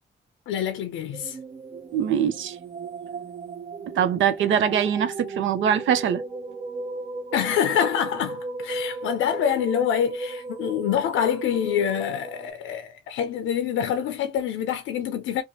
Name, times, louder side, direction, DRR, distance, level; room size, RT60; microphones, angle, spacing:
voice 1, 0.5-1.4 7.3-15.4, left 9 dB, 85° left, 0.5 m, -26 dB
sound 1, 1.1-12.5, right 3 dB, 40° right, 0.6 m, -35 dB
voice 2, 1.9-2.6 3.9-6.2, right 8 dB, 80° right, 0.6 m, -23 dB
2.7 x 2.2 x 2.8 m
supercardioid pair, 55°, 20 cm